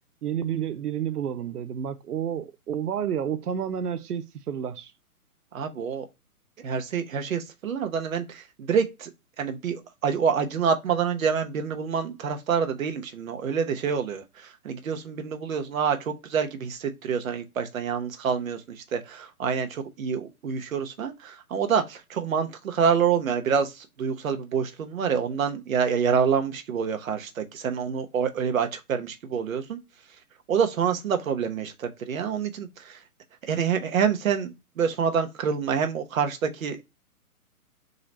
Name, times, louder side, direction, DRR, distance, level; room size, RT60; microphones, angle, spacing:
voice 1, 0.2-4.9, right 9 dB, 90° right, 0.6 m, -30 dB
voice 2, 5.5-6.1 6.6-9.1 9.4-29.8 30.5-33.0 33.5-36.9, right 7 dB, 65° right, 1.0 m, -27 dB
3.9 x 3.1 x 4.1 m
hypercardioid pair, 145°, 45 cm